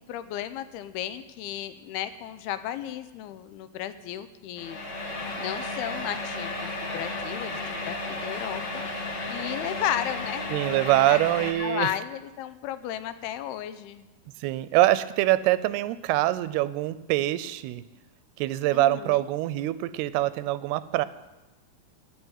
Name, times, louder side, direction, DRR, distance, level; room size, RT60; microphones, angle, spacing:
voice 1, 0.0-4.8 5.4-8.6 9.3-10.5 11.1-11.2 11.6-14.1 18.7-19.2, left 11 dB, 85° left, 12 dB, 2.7 m, -34 dB
sound 1, 4.6-11.5, left 2 dB, 50° left, 1.3 m, -33 dB
voice 2, 10.5-12.0 14.4-17.8 18.4-21.1, right 16 dB, 90° right, 16 dB, 2.6 m, -24 dB
15.5 x 6.4 x 9.8 m, 1.1 s
omnidirectional pair, 4.5 m